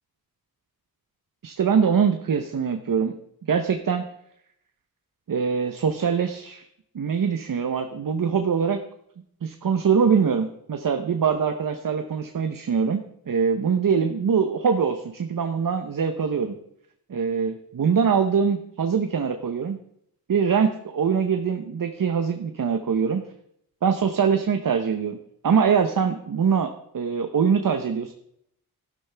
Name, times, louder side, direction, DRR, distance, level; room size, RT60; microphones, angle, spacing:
voice 1, 1.4-3.2 3.5-4.0 5.3-6.7 6.9-8.8 9.4-16.6 17.1-19.8 20.3-23.2 23.8-25.2 25.4-28.1, right 6 dB, 60° right, 7 dB, 0.9 m, -23 dB
12.5 x 11.5 x 3.4 m, 0.73 s
wide cardioid pair, 90°, 37 cm